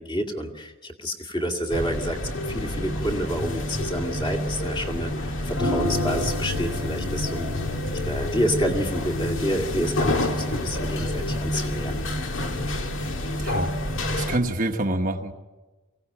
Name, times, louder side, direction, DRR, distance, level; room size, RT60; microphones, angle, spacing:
voice 1, 0.0-2.2 2.5-7.5 7.9-12.0, equal, 20° left, 2 dB, 2.3 m, -29 dB
sound 1, 1.7-14.4, left 1 dB, 60° left, 2.1 m, -28 dB
sound 2, 5.5-11.4, left 2 dB, 80° left, 3.7 m, -32 dB
voice 2, 14.1-15.3, right 1 dB, 35° right, 4 dB, 1.1 m, -26 dB
24.0 x 17.0 x 8.7 m, 1.2 s
head